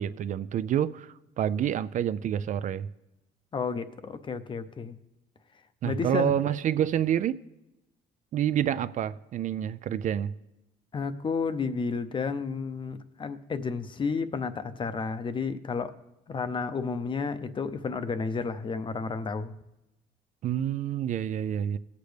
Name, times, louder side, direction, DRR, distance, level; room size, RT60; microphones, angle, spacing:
voice 1, 0.0-2.9 5.8-7.4 8.3-10.3 20.4-21.8, right 10 dB, 50° right, 0.4 m, -28 dB
voice 2, 3.5-5.0 5.8-6.5 10.9-15.9 16.3-19.5, left 5 dB, 30° left, 0.7 m, -31 dB
19.0 x 8.2 x 3.4 m
cardioid pair, 110°, 17 cm